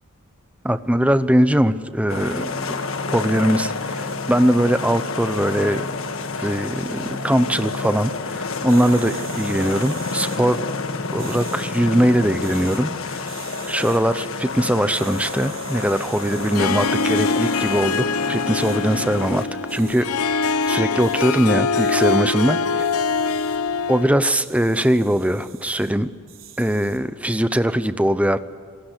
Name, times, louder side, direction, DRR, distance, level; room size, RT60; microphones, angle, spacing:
voice 1, 0.6-2.8 3.1-5.8 6.4-10.6 11.1-13.3 13.7-22.8 23.9-26.1 26.6-28.4, right 1 dB, 5° right, 12 dB, 0.8 m, -21 dB
sound 1, 2.1-19.4, left 3 dB, 65° left, 1.6 m, -29 dB
sound 2, 8.7-10.4 11.2-11.7 12.3-12.8 13.3-14.0 14.9-18.0 18.6-18.8 19.7-20.0 20.6-21.5 21.7-22.2 22.8-23.6 24.3-25.9 26.3-27.0, right 9 dB, 60° right, 4.4 m, -42 dB
Harp, 16.4-24.3, left 4 dB, 80° left, 0.9 m, -23 dB
28.0 x 20.0 x 8.4 m, 2.1 s
head